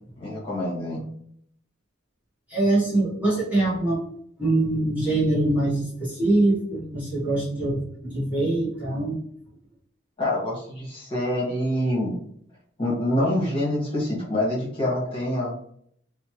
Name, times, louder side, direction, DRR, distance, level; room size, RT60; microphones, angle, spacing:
voice 1, 0.2-1.0 10.2-12.2 12.8-15.7, left 1 dB, 25° left, -6 dB, 1.1 m, -26 dB
voice 2, 2.5-4.0 4.4-9.2, right 2 dB, 10° right, -9 dB, 0.8 m, -23 dB
2.9 x 2.1 x 2.9 m, 0.66 s
head